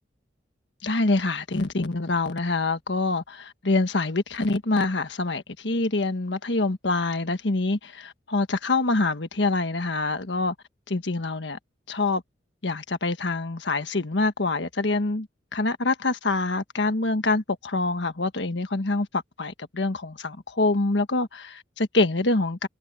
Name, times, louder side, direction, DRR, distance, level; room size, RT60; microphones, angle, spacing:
voice 1, 0.8-10.5 10.9-11.6 11.9-12.2 12.6-15.3 15.5-22.7, left 2 dB, 75° left, 1.5 m, -25 dB
head